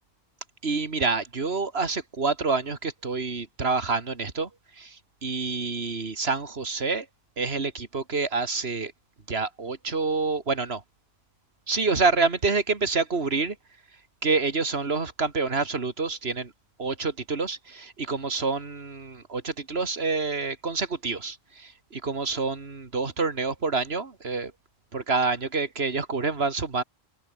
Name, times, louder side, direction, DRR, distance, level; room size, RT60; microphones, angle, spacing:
voice 1, 0.6-4.5 4.8-7.1 7.4-8.9 9.3-10.8 11.7-13.6 14.2-16.5 16.8-24.5 24.9-26.8, right 4 dB, 75° right, 2.5 m, -27 dB
omnidirectional pair, 1.1 m